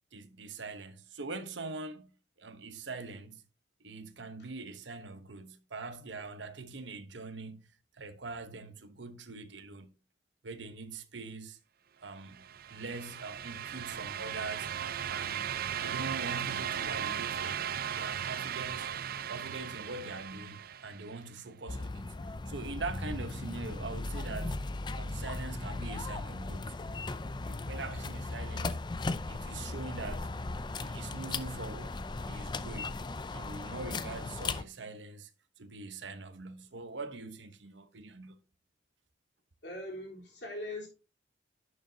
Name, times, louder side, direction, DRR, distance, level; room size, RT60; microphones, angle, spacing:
voice 1, 0.1-2.1 2.4-3.4 3.8-7.7 7.9-9.9 10.4-11.6 12.0-14.7 15.1-17.7 17.9-19.0 19.3-22.1 22.5-24.6 24.9-26.8 27.4-30.3 30.7-31.9 32.3-33.0 33.3-35.3 35.6-38.4, right 3 dB, 80° right, 1.0 m, -43 dB
sound 1, 12.3-21.2, right 9 dB, 55° right, 0.5 m, -37 dB
sound 2, 21.7-34.6, left 3 dB, 25° left, 0.4 m, -37 dB
voice 2, 39.6-40.9, left 1 dB, 65° left, 3.8 m, -41 dB
11.0 x 6.4 x 2.8 m
head